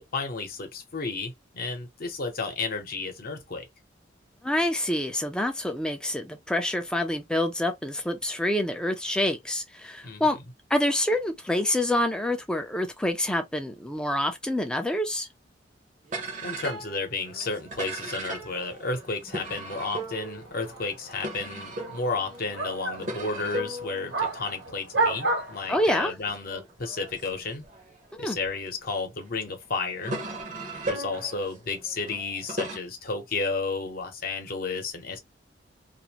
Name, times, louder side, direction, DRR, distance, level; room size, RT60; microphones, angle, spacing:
voice 1, 0.0-3.6 10.0-10.4 16.4-27.6 28.2-30.2 30.8-35.2, left 3 dB, 50° left, 0.8 m, -32 dB
voice 2, 4.4-10.4 10.7-15.3 25.7-26.1 28.1-28.4, left 1 dB, 5° left, 0.4 m, -27 dB
sound 1, 16.1-28.7 29.3-32.8, right 1 dB, 45° right, 0.7 m, -38 dB
sound 2, 19.7-26.1, right 3 dB, 70° right, 1.1 m, -33 dB
2.5 x 2.1 x 2.8 m
head